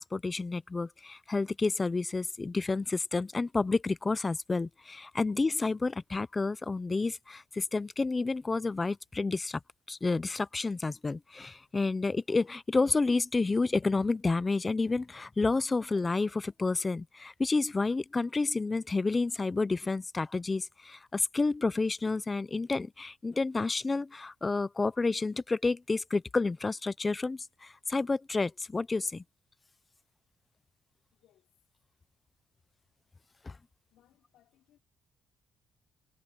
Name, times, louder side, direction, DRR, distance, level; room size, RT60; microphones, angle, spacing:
voice 1, 0.0-9.6 9.9-29.2 33.4-33.6, left 3 dB, 25° left, 0.6 m, -30 dB
voice 2, 31.1-31.5 33.9-34.8, left 13 dB, 85° left, 4.0 m, -67 dB
cardioid pair, 90°, 0 cm